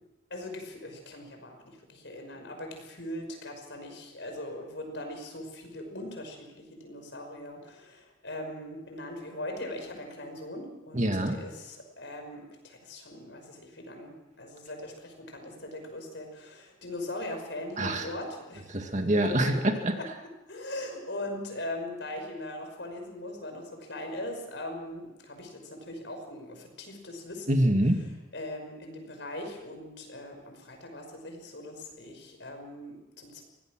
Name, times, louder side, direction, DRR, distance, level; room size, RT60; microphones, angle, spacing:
voice 1, 0.3-18.8 19.4-19.6 20.0-20.1 20.5-27.6 28.3-33.4, left 1 dB, 70° left, 4 dB, 5.6 m, -40 dB
voice 2, 10.9-11.4 17.8-18.1 18.7-19.9 27.5-28.0, right 1 dB, 40° right, 5 dB, 2.1 m, -25 dB
24.0 x 18.0 x 6.3 m, 0.98 s
head